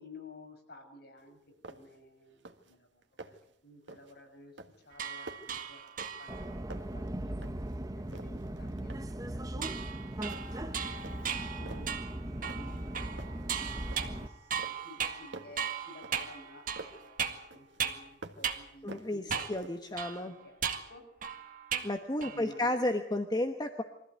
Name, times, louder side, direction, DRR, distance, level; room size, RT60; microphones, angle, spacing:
voice 1, 0.0-1.4 1.7-3.0 3.3-3.4 3.6-5.8 6.2-7.4 7.9-9.8 10.4-11.1 11.6-12.0 12.5-17.2 17.5-21.0 22.2-22.7, left 1 dB, 60° left, 3 dB, 6.3 m, -54 dB
sound 1, 1.2-1.3 1.6-2.0 2.3-2.7 3.0-3.5 3.9-4.2 4.6-6.4 6.7-7.8 8.1-9.2 9.6-9.9 10.3-10.7 11.0-12.0 12.5-12.9 13.2-14.3 14.6-17.1 17.5-18.6 18.9-19.9, right 2 dB, 75° right, 1.8 m, -49 dB
sound 2, 4.9-6.5 9.6-18.1 18.4-18.6 19.3-19.6 20.0-22.0 22.2-22.6, right 7 dB, 45° right, 1.9 m, -37 dB
Subway metro underground, 6.3-14.3, right 1 dB, 20° right, 0.9 m, -39 dB
voice 2, 18.8-19.2 19.5-20.3 21.8-23.8, left 1 dB, 20° left, 6 dB, 1.2 m, -32 dB
23.5 x 15.0 x 9.4 m, 0.79 s
head